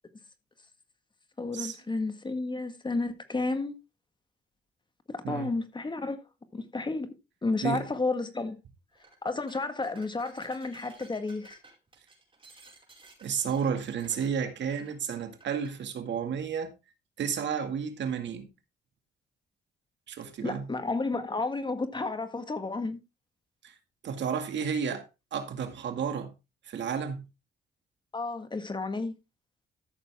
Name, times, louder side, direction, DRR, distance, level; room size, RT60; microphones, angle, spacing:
voice 1, 1.4-3.8 5.1-6.2 6.5-7.1 7.4-8.6 9.2-11.6 20.4-23.0 28.1-29.2, left 3 dB, 25° left, 1.7 m, -32 dB
sound 1, 8.9-9.2 9.5-15.8, right 3 dB, 25° right, 5.0 m, -55 dB
voice 2, 13.2-16.7 17.2-18.5 20.1-20.7 23.6-23.7 24.0-26.3 26.6-27.3, right 7 dB, 65° right, 2.1 m, -32 dB
13.5 x 6.8 x 3.5 m
cardioid pair, 90°, 20 cm